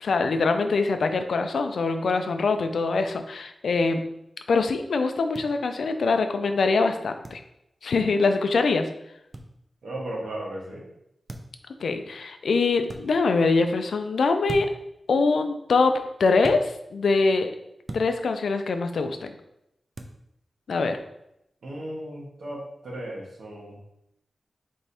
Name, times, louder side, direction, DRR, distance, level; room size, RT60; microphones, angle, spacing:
voice 1, 0.0-4.0 4.5-7.4 7.8-8.9 11.8-14.7 15.1-16.6 16.9-17.5 17.9-19.3 20.7-21.0, left 4 dB, 85° left, 7 dB, 0.4 m, -23 dB
sound 1, 5.3-5.5 7.2-7.4 9.3-9.5 11.3-11.6 12.8-13.0 14.5-14.9 16.4-16.6 17.9-18.1 19.9-20.2, right 1 dB, 35° right, 0.4 m, -37 dB
voice 2, 9.8-10.8 21.6-23.8, right 1 dB, 90° right, -3 dB, 1.3 m, -35 dB
3.5 x 3.4 x 4.2 m, 0.81 s
wide cardioid pair, 115°, 0 cm